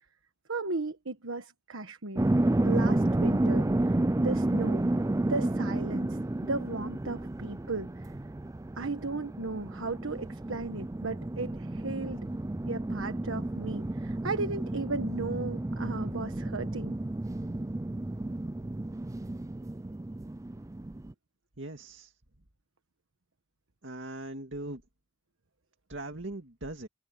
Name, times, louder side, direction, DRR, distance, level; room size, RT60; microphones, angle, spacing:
voice 1, 0.5-2.3 2.6-4.9 5.3-8.1 8.8-12.3 12.7-16.9, right 3 dB, 90° right, 1.3 m, -35 dB
sound 1, 2.2-21.1, right 1 dB, 15° right, 0.4 m, -31 dB
voice 2, 21.6-22.1 23.8-24.8 25.9-26.9, right 2 dB, 65° right, 2.2 m, -40 dB
head